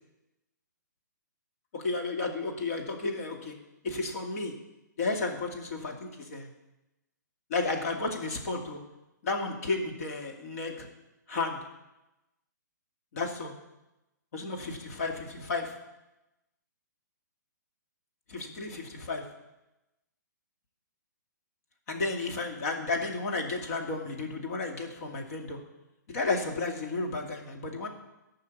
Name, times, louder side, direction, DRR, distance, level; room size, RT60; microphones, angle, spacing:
voice 1, 1.7-3.6 3.8-4.5 5.0-6.5 7.5-8.8 9.2-10.9 11.3-11.6 13.1-13.5 14.3-15.8 18.3-19.2 21.9-25.6 26.1-27.9, left 3 dB, 55° left, 2 dB, 2.4 m, -32 dB
14.5 x 5.6 x 8.5 m, 0.99 s
hypercardioid pair, 150°, 10 cm